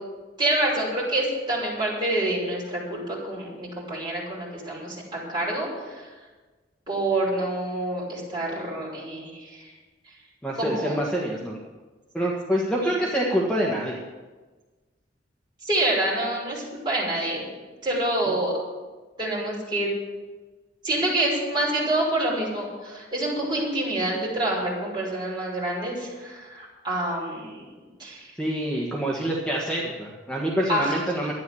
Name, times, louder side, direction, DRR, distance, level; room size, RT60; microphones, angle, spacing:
voice 1, 0.4-6.1 6.9-9.7 10.6-11.0 12.8-12.9 15.6-17.4 17.8-18.5 19.2-19.9 20.8-27.7 28.0-28.3 30.7-30.9, right 1 dB, 25° right, -5 dB, 5.9 m, -27 dB
voice 2, 10.4-11.6 12.1-14.0 28.4-31.3, equal, 5° left, -4 dB, 1.5 m, -26 dB
13.0 x 10.5 x 7.1 m, 1.3 s
head